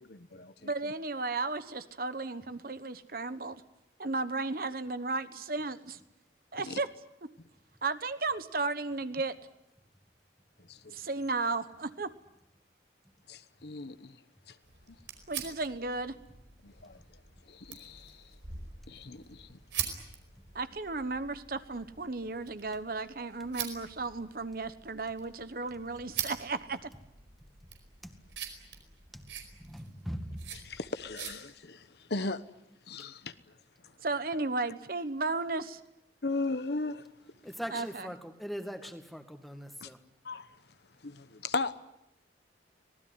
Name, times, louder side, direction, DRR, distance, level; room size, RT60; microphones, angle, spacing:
voice 1, 0.0-0.9 6.7-6.8 10.7-11.0 13.3-14.2 14.5-14.6 16.6-17.0 17.5-18.2 18.9-19.6 30.7-32.5 32.9-33.3 36.2-37.1 39.8-39.9 40.2-40.5 41.0-41.7, left 3 dB, 60° left, 1.1 m, -37 dB
voice 2, 0.6-3.6 4.0-6.0 6.5-6.9 7.8-9.4 10.9-12.1 15.3-16.1 20.5-26.9 34.0-35.8 37.7-38.1, right 3 dB, 50° right, 1.1 m, -34 dB
sound 1, 14.6-31.3, right 8 dB, 90° right, 4.9 m, -44 dB
voice 3, 29.6-30.4 37.4-40.0, equal, ahead, 2.0 m, -41 dB
25.0 x 19.5 x 9.6 m
head